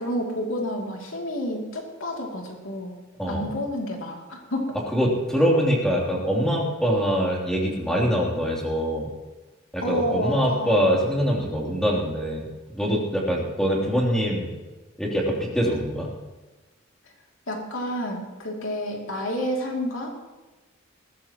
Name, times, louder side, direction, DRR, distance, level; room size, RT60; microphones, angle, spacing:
voice 1, 0.0-2.9 3.3-4.8 9.8-11.0 17.5-20.1, equal, 85° left, 0 dB, 2.7 m, -29 dB
voice 2, 4.9-9.1 9.7-14.5 15.0-16.1, equal, 5° left, -3 dB, 3.0 m, -24 dB
20.5 x 15.5 x 3.0 m, 1.2 s
head